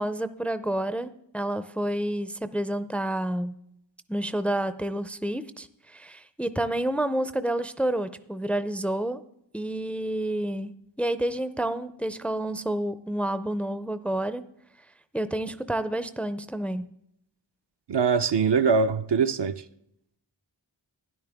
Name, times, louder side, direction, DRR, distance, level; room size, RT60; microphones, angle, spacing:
voice 1, 0.0-3.5 4.1-9.2 9.5-14.4 15.1-16.9, right 1 dB, 5° left, 0.4 m, -29 dB
voice 2, 17.9-19.6, right 5 dB, 65° right, 0.6 m, -23 dB
12.5 x 10.0 x 3.5 m
wide cardioid pair, 50°, 44 cm